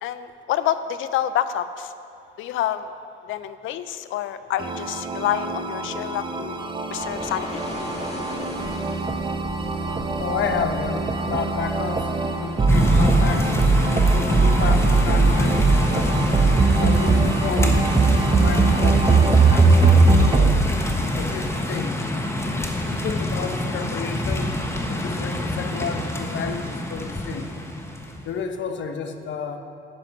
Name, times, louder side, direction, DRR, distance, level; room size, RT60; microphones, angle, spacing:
voice 1, 0.0-1.9 2.4-2.9 3.3-6.6 6.9-7.6, left 11 dB, 85° left, 13 dB, 0.6 m, -27 dB
sound 1, 4.6-20.6, right 3 dB, 25° right, 0.7 m, -20 dB
sound 2, 6.9-21.4, left 2 dB, 35° left, 1.5 m, -38 dB
voice 2, 10.2-12.1 12.4-13.5 14.1-16.2 16.7-17.8 18.3-20.6 21.2-22.0 22.8-24.6 24.9-27.5 28.2-29.6, left 6 dB, 65° left, 6 dB, 1.0 m, -31 dB
sound 3, 12.7-28.2, left 1 dB, 15° left, 1.2 m, -25 dB
10.5 x 9.0 x 5.9 m, 2.7 s
cardioid pair, 90°, 20 cm